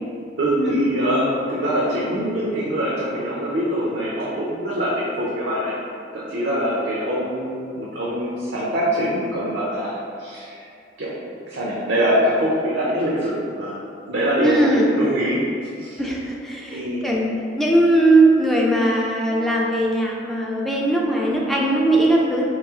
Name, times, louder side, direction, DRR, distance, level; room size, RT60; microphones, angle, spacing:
voice 1, 0.4-5.8 6.1-10.6 11.0-11.1 11.5-13.8 14.1-15.4 15.8-16.0 16.7-17.1, equal, 70° right, -6 dB, 0.6 m, -23 dB
voice 2, 14.4-14.9 16.0-17.3 17.6-22.5, right 1 dB, ahead, -4 dB, 0.3 m, -19 dB
3.1 x 3.0 x 3.5 m, 2.4 s
head